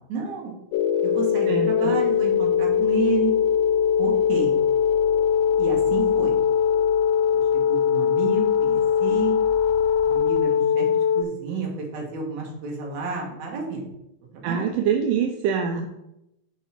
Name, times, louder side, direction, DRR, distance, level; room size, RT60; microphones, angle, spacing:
voice 1, 0.1-0.5 1.0-3.3 4.0-4.5 5.6-6.4 7.3-9.3 10.0-13.9 14.3-14.7, right 4 dB, 60° right, -1 dB, 2.7 m, -31 dB
sound 1, 0.7-11.2, left 7 dB, 80° left, 2.1 m, -21 dB
voice 2, 1.5-1.9 14.4-15.9, right 7 dB, 80° right, 4 dB, 2.0 m, -24 dB
7.9 x 4.6 x 4.5 m, 0.86 s
omnidirectional pair, 4.2 m